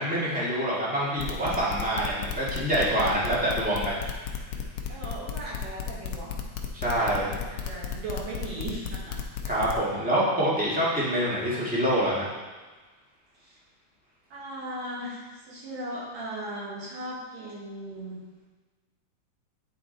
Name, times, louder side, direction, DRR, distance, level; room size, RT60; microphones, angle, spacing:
voice 1, 0.0-4.3 6.7-7.3 9.4-12.3, right 1 dB, 10° right, -8 dB, 0.5 m, -26 dB
sound 1, 1.2-9.8, left 9 dB, 85° left, 1.3 m, -33 dB
voice 2, 4.6-6.5 6.8-9.2 11.5-11.7 13.4-13.6 14.3-18.2, right 1 dB, 65° right, -6 dB, 2.9 m, -38 dB
9.6 x 4.2 x 3.9 m, 1.3 s
omnidirectional pair, 3.5 m